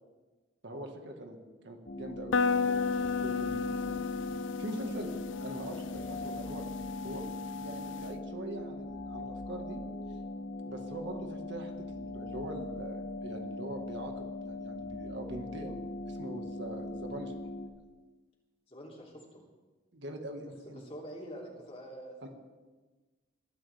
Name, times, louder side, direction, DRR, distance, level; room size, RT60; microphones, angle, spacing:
voice 1, 0.6-1.4 1.6-4.0 4.6-5.1 5.4-6.6 7.0-9.8 10.7-17.3 19.9-20.8 22.2-22.3, right 1 dB, 65° right, 3 dB, 1.7 m, -43 dB
sound 1, 1.9-17.7, left 2 dB, 50° left, 1.0 m, -40 dB
sound 2, 2.3-8.1, left 5 dB, 75° left, 0.5 m, -34 dB
voice 2, 18.7-19.4 20.6-22.3, equal, 35° left, -2 dB, 3.2 m, -46 dB
21.0 x 12.0 x 3.5 m, 1.3 s
head